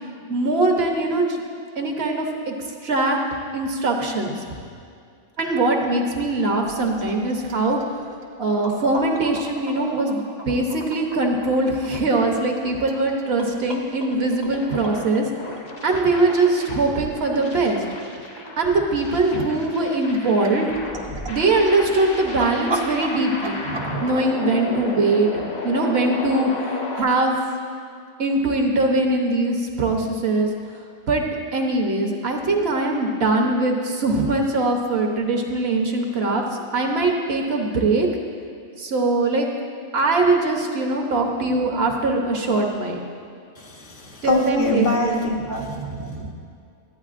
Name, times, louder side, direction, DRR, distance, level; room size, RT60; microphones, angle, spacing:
voice 1, 0.3-1.4 1.8-2.5 2.8-3.2 3.5-4.3 5.4-7.8 8.4-15.3 15.8-17.8 18.6-20.7 21.3-25.3 25.6-27.4 28.2-30.5 31.1-31.2 31.5-36.4 36.7-38.1 38.8-39.5 39.9-43.0 44.2-45.3 45.6-46.3, right 2 dB, 60° right, 2 dB, 1.1 m, -22 dB
sound 1, 6.7-24.2, right 2 dB, 30° right, 0.5 m, -36 dB
sound 2, 14.6-27.0, left 2 dB, 60° left, 1.1 m, -34 dB
voice 2, 43.6-45.6, left 2 dB, 80° left, -1 dB, 1.4 m, -24 dB
12.0 x 9.0 x 2.5 m, 2.4 s
omnidirectional pair, 1.2 m